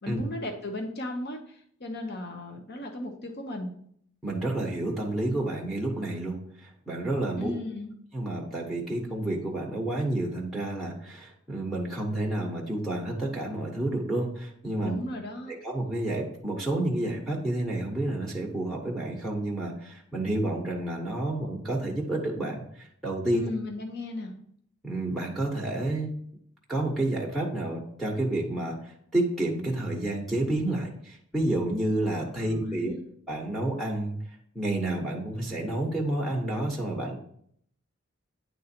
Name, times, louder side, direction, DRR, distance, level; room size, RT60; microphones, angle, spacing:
voice 1, 0.0-3.7 7.4-7.9 14.8-15.5 23.3-24.3 32.4-33.1, left 2 dB, 50° left, 4 dB, 0.9 m, -36 dB
voice 2, 4.2-7.5 8.1-15.0 15.5-23.5 24.8-26.1 26.7-32.9 33.3-34.2 34.5-37.2, right 1 dB, ahead, -4 dB, 1.1 m, -30 dB
9.2 x 3.9 x 4.3 m, 0.66 s
head